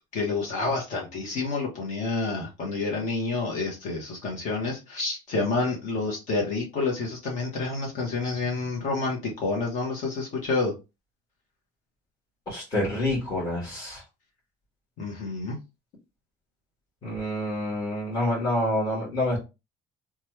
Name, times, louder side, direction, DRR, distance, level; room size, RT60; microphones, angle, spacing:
voice 1, 0.1-10.7 15.0-15.6, left 3 dB, 50° left, 1.1 m, -29 dB
voice 2, 12.5-14.0 17.0-19.4, left 1 dB, 25° left, 1.3 m, -27 dB
3.0 x 2.3 x 3.0 m
cardioid pair, 170°, 16 cm